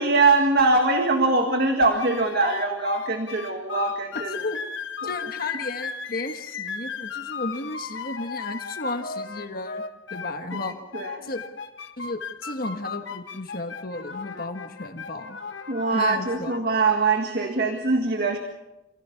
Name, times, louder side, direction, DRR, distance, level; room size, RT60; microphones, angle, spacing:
voice 1, 0.0-4.4 10.6-11.1 15.7-18.4, right 3 dB, 50° right, 5 dB, 1.8 m, -22 dB
sound 1, 2.0-17.0, left 5 dB, 65° left, 1.5 m, -36 dB
voice 2, 4.3-4.6 5.0-9.8 10.1-10.7 11.2-11.4 12.0-15.4 15.9-16.5, left 2 dB, 45° left, 7 dB, 1.3 m, -33 dB
27.0 x 17.0 x 7.0 m, 0.98 s
head